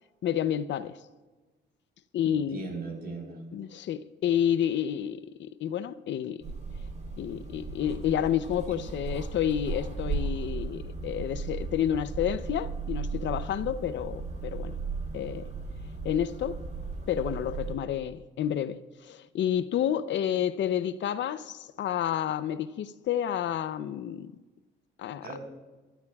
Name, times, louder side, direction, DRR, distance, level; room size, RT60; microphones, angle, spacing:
voice 1, 0.2-1.0 2.1-2.7 3.5-6.4 7.2-14.8 15.1-15.5 16.0-16.6 17.1-24.3 25.0-25.3, left 10 dB, 65° left, 0.6 m, -30 dB
voice 2, 2.2-3.4 8.7-8.8 25.2-25.4, right 4 dB, 50° right, 4.0 m, -39 dB
sound 1, 6.4-17.7, right 4 dB, 35° right, 3.5 m, -36 dB
26.5 x 12.5 x 2.4 m
cardioid pair, 90°, 20 cm